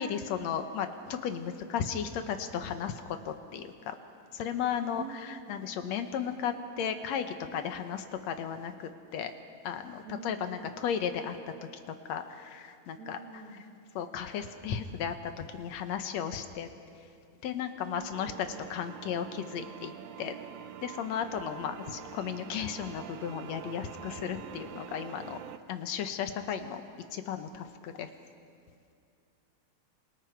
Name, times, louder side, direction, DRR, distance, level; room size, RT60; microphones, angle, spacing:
voice 1, 0.0-4.0 4.3-9.3 9.6-11.4 12.1-13.2 14.0-16.7 17.4-19.9 20.2-20.3 20.8-25.4 25.7-26.8 27.1-28.1, left 8 dB, 70° left, 8 dB, 2.2 m, -35 dB
voice 2, 4.8-5.7 10.0-10.7 13.0-13.6, right 4 dB, 30° right, 0 dB, 2.4 m, -46 dB
sound 1, 18.1-25.6, right 11 dB, 85° right, 2.2 m, -45 dB
27.5 x 27.5 x 4.7 m, 2.4 s
omnidirectional pair, 3.4 m